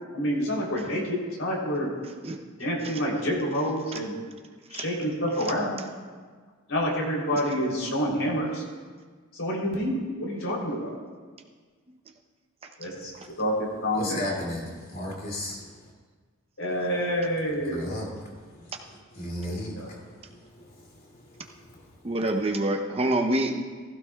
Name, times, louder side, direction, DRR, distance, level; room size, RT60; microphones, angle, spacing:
voice 1, 0.1-1.9 2.6-4.2 4.7-5.8 6.7-8.6 9.3-10.9 12.8-13.1 13.4-14.2 16.6-17.8 19.8-19.9, equal, 75° left, -3 dB, 3.4 m, -28 dB
voice 2, 13.9-15.9 16.9-17.1 17.3-22.1, left 1 dB, 45° left, -2 dB, 2.6 m, -37 dB
voice 3, 22.0-23.6, right 1 dB, 30° right, 3 dB, 0.8 m, -26 dB
15.5 x 15.5 x 2.4 m, 1.5 s
head